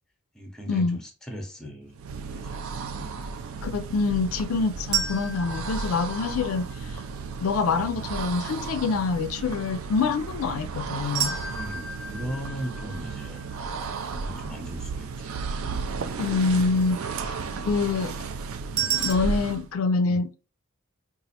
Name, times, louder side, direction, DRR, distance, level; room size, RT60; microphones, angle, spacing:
voice 1, 0.3-2.6 2.9-3.3 11.5-13.4 14.1-15.8 18.7-18.9 20.0-20.3, equal, 5° left, 0.6 m, -39 dB
sound 1, 1.9-19.7, right 4 dB, 75° right, 0.4 m, -34 dB
voice 2, 3.6-7.0 7.4-11.4 16.2-17.0 17.6-18.1 18.8-20.4, left 4 dB, 75° left, 0.4 m, -26 dB
sound 2, 4.9-7.0 11.1-14.3 18.8-19.1, right 7 dB, 60° right, 1.0 m, -32 dB
4.1 x 2.4 x 2.7 m
head